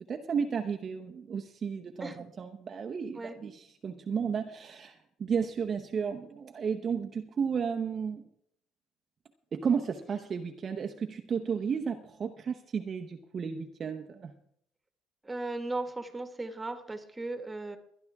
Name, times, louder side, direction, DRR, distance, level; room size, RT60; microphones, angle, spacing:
voice 1, 0.1-8.3 9.5-14.3, right 6 dB, 35° right, 4 dB, 0.9 m, -33 dB
voice 2, 15.2-17.8, right 2 dB, 10° right, 7 dB, 1.8 m, -36 dB
21.0 x 11.5 x 3.6 m, 0.71 s
cardioid pair, 130°, 0 cm